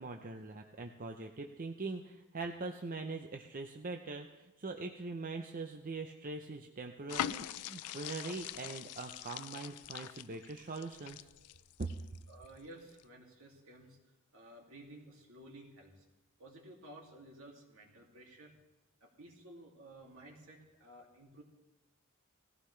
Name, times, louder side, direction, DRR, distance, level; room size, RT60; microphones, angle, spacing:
voice 1, 0.0-11.3 11.8-11.9, right 3 dB, 40° right, 4 dB, 0.7 m, -42 dB
sound 1, 7.1-12.5 12.9-13.0, left 11 dB, 90° left, 0.4 m, -43 dB
voice 2, 12.3-14.0 14.3-16.0 16.4-18.5 19.0-21.4, right 1 dB, 70° right, 0 dB, 2.6 m, -54 dB
18.5 x 15.0 x 3.3 m, 1.0 s
head